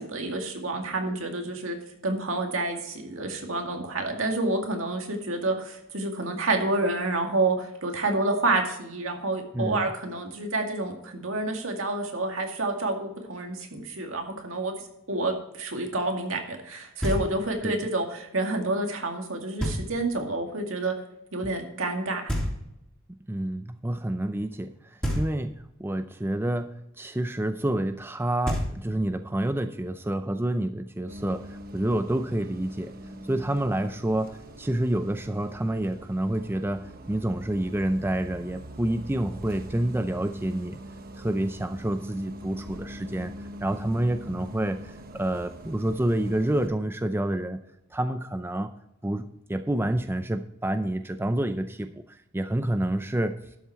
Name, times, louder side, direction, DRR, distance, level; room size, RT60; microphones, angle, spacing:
voice 1, 0.0-1.8 2.0-14.7 15.1-20.9 21.3-22.3, right 2 dB, 70° right, 3 dB, 2.2 m, -29 dB
voice 2, 9.5-9.9 17.6-17.8 23.3-25.5 25.8-32.9 33.2-40.8 41.1-47.6 47.9-48.7 49.0-53.4, right 1 dB, 10° right, 9 dB, 0.5 m, -28 dB
Knock, 17.0-17.7 19.6-20.3 22.3-23.1 25.0-25.8 28.1-28.2 28.4-29.3, equal, 5° left, 2.9 m, -31 dB
Bus, 31.1-46.7, equal, 45° right, 1.0 m, -43 dB
12.0 x 7.2 x 4.6 m, 0.81 s
head